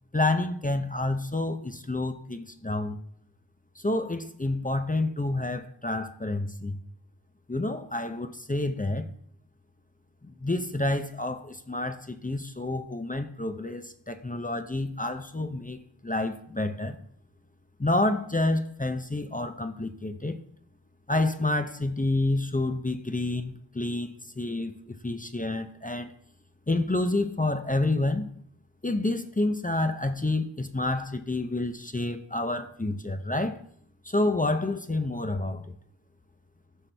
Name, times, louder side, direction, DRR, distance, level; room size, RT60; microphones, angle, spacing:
voice 1, 0.1-3.0 3.8-6.8 7.5-9.1 10.2-17.0 17.8-20.4 21.1-26.1 26.7-28.3 28.8-33.6 34.0-35.6, left 2 dB, 20° left, 8 dB, 0.6 m, -29 dB
14.5 x 6.0 x 3.4 m, 0.66 s
wide cardioid pair, 50°, 45 cm